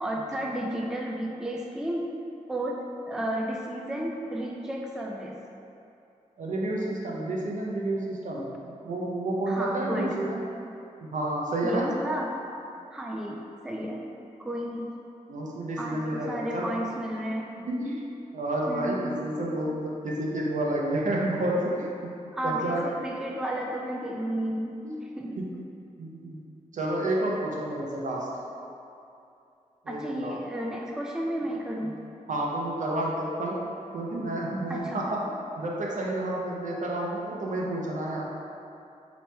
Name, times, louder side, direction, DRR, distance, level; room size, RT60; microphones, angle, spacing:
voice 1, 0.0-2.1 2.5-2.8 3.1-5.4 9.5-10.1 11.6-12.3 12.9-14.0 14.4-14.9 15.8-17.5 18.7-19.1 22.3-24.8 25.2-25.4 29.9-31.9 34.7-35.0, right 1 dB, 5° right, -1 dB, 0.3 m, -32 dB
voice 2, 6.4-10.4 11.1-11.9 15.3-16.7 17.7-18.1 18.3-21.9 22.4-22.8 24.8-25.0 26.0-26.4 26.7-28.3 29.8-30.4 31.8-31.9 32.3-33.6 33.9-38.2, right 1 dB, 65° right, -3 dB, 0.6 m, -30 dB
3.0 x 3.0 x 3.3 m, 2.7 s
cardioid pair, 60°, 14 cm